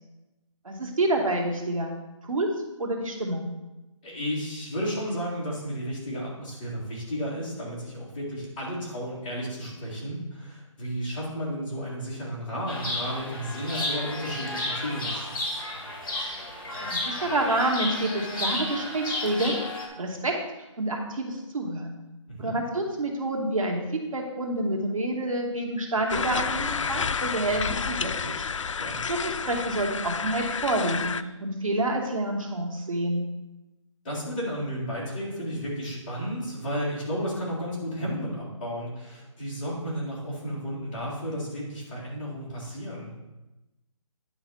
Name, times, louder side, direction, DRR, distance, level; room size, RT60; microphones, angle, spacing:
voice 1, 0.6-1.9 2.2-2.5 2.8-3.5 16.8-19.6 20.0-20.4 20.8-22.0 22.4-28.4 29.1-31.1 31.4-33.3, right 1 dB, 90° right, 1 dB, 2.1 m, -28 dB
voice 2, 4.0-15.3 22.3-22.6 28.8-29.0 34.0-43.1, equal, 15° left, -9 dB, 2.0 m, -33 dB
Chirp tweet, 12.7-19.9, left 1 dB, 40° left, 2.2 m, -32 dB
sound 1, 26.1-31.2, left 6 dB, 70° left, 0.4 m, -30 dB
10.0 x 4.1 x 5.5 m, 1.0 s
hypercardioid pair, 180°, 17 cm